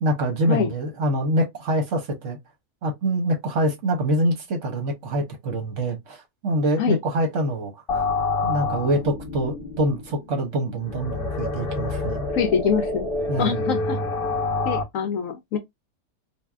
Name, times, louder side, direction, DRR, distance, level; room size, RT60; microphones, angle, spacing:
voice 1, 0.0-2.4 2.8-8.0 8.4-12.3 13.3-13.6, right 1 dB, 60° right, 1.0 m, -25 dB
sound 1, 7.9-14.8, left 3 dB, 45° left, 0.9 m, -27 dB
voice 2, 12.3-13.1 13.4-14.0 14.6-15.6, left 7 dB, 70° left, 0.8 m, -24 dB
3.3 x 2.6 x 2.3 m
omnidirectional pair, 1.7 m